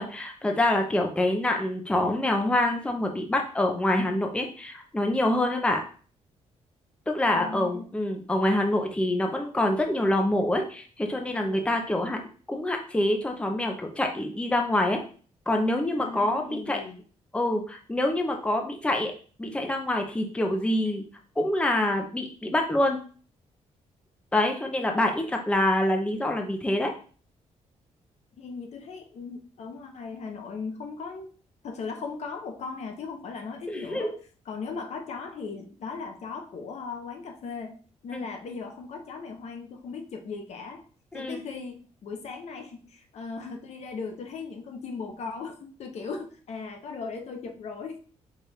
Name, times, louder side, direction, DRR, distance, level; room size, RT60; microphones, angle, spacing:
voice 1, 0.0-5.8 7.1-12.2 12.5-15.0 15.5-16.8 17.3-19.1 19.4-21.0 21.4-23.0 24.3-26.9 33.7-34.1 38.1-38.3 41.1-41.4, left 1 dB, 10° left, 3 dB, 0.6 m, -26 dB
voice 2, 7.3-7.9 16.0-17.0 28.4-31.3 31.6-34.1 34.5-40.8 41.1-48.0, left 4 dB, 60° left, 4 dB, 0.8 m, -38 dB
4.8 x 2.5 x 4.3 m, 0.41 s
cardioid pair, 125°, 12 cm